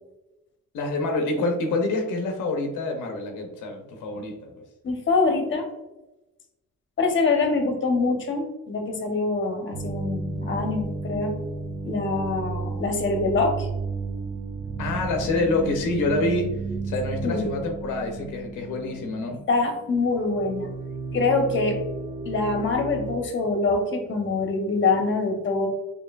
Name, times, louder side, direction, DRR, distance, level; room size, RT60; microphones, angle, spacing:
voice 1, 0.7-4.5 14.8-16.5 16.8-19.4, left 2 dB, 90° left, 3 dB, 0.7 m, -27 dB
voice 2, 4.8-5.7 7.0-11.3 11.8-13.7 17.2-17.5 19.3-20.7 21.1-21.8 22.3-25.7, left 3 dB, 40° left, 3 dB, 0.9 m, -24 dB
sound 1, 9.7-19.7 19.9-23.2, right 4 dB, 20° right, 0.6 m, -33 dB
4.3 x 2.9 x 2.4 m, 1.0 s
cardioid pair, 90°, 30 cm